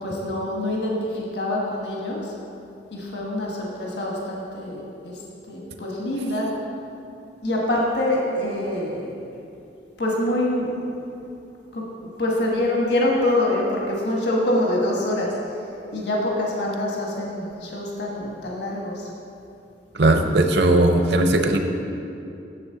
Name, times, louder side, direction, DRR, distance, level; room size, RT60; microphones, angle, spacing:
voice 1, 0.0-2.3 2.9-5.2 5.5-6.5 7.4-9.1 10.0-10.8 11.7-11.9 12.2-15.6 15.9-19.1 20.0-20.1, left 1 dB, 70° left, -2 dB, 1.3 m, -25 dB
voice 2, 19.9-21.6, right 2 dB, 65° right, 5 dB, 0.7 m, -18 dB
9.0 x 7.2 x 3.8 m, 2.7 s
head